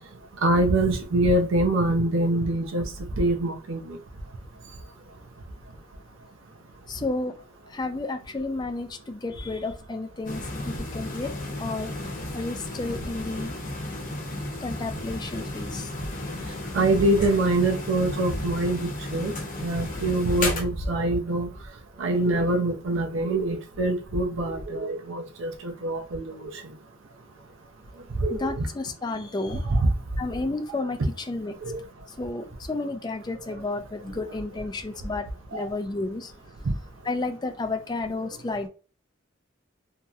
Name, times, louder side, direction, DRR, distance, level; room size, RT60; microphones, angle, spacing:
voice 1, 0.4-2.8 3.2-3.8 16.7-19.3 19.6-21.5 22.0-26.5 28.2-28.7 29.7-29.9 31.6-31.8 35.5-35.6, right 2 dB, 75° right, 0.5 m, -24 dB
voice 2, 6.9-7.3 7.7-11.9 12.3-13.5 14.6-15.9 28.3-29.6 30.2-31.6 32.2-36.3 37.0-38.7, left 2 dB, 20° left, 0.4 m, -32 dB
sound 1, 10.2-20.6, left 2 dB, 45° left, 0.7 m, -34 dB
2.9 x 2.8 x 2.3 m
head